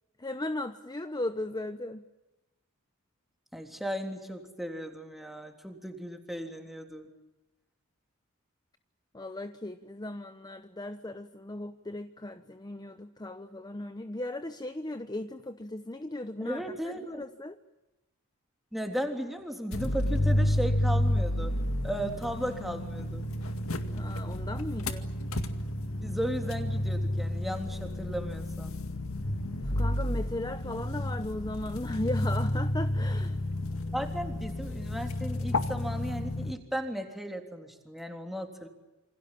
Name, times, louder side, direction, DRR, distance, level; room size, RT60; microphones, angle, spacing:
voice 1, 0.2-2.1 9.1-17.6 23.9-25.1 29.6-33.4, left 1 dB, 20° left, 10 dB, 0.9 m, -37 dB
voice 2, 3.5-7.1 16.4-17.2 18.7-21.5 21.8-23.2 26.0-28.8 33.9-38.7, equal, ahead, 4 dB, 3.4 m, -36 dB
sound 1, 19.7-36.5, left 1 dB, 70° left, 2.2 m, -31 dB
28.0 x 25.5 x 7.4 m, 1.0 s
head